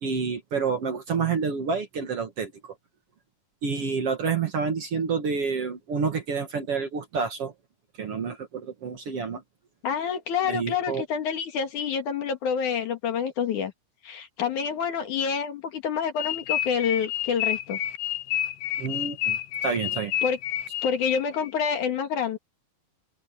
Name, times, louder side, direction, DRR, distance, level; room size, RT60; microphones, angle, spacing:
voice 1, 0.0-2.7 3.6-7.5 8.0-9.4 10.5-11.0 18.8-20.1, right 5 dB, 50° right, 2.3 m, -28 dB
voice 2, 9.8-13.7 14.0-17.8 20.2-20.4 20.8-22.4, left 7 dB, 65° left, 3.3 m, -27 dB
sound 1, 16.2-21.5, left 12 dB, 90° left, 2.7 m, -29 dB
open air
omnidirectional pair, 3.9 m